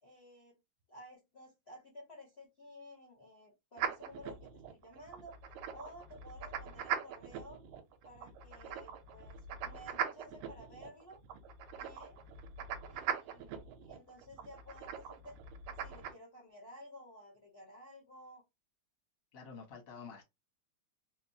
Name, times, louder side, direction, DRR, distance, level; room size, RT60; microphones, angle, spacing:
voice 1, 0.0-0.5 0.9-5.4 5.7-7.6 8.0-11.2 11.7-12.2 12.9-15.4 15.8-18.4, equal, 70° left, 0.5 m, -54 dB
sound 1, 3.8-16.1, right 8 dB, 75° right, 1.9 m, -42 dB
voice 2, 19.3-20.2, left 5 dB, 55° left, 0.9 m, -49 dB
4.6 x 2.1 x 2.7 m
omnidirectional pair, 3.4 m